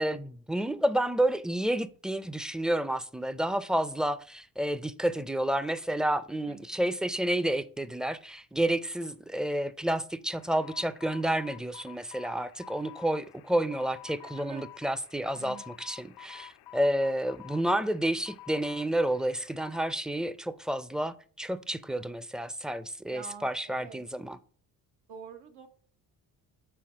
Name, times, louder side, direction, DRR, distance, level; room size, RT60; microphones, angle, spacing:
voice 1, 0.0-24.4, right 1 dB, ahead, 0.5 m, -30 dB
voice 2, 6.5-6.9 14.2-14.7 15.3-15.8 23.1-24.0 25.1-25.7, right 7 dB, 85° right, 1.2 m, -47 dB
sound 1, 10.3-19.9, left 14 dB, 70° left, 0.5 m, -50 dB
7.8 x 4.0 x 5.0 m
supercardioid pair, 65°, 39 cm